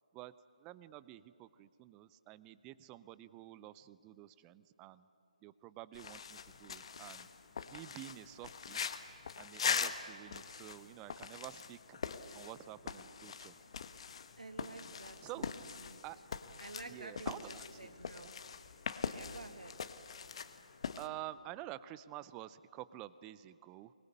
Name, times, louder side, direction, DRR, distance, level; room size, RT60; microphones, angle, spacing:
voice 1, 0.6-5.1 5.4-7.3 7.7-8.8 9.4-12.0 12.3-13.5 15.2-15.5 16.0-16.2 16.9-17.6 21.0-23.9, right 15 dB, 15° right, 17 dB, 0.5 m, -49 dB
sound 1, 5.9-21.1, left 6 dB, 45° left, 1.2 m, -42 dB
voice 2, 14.4-16.0 16.6-18.3 19.1-19.9, right 2 dB, 75° right, 8 dB, 2.0 m, -50 dB
24.0 x 20.5 x 8.5 m, 2.9 s
figure-of-eight pair, 145°, 4 cm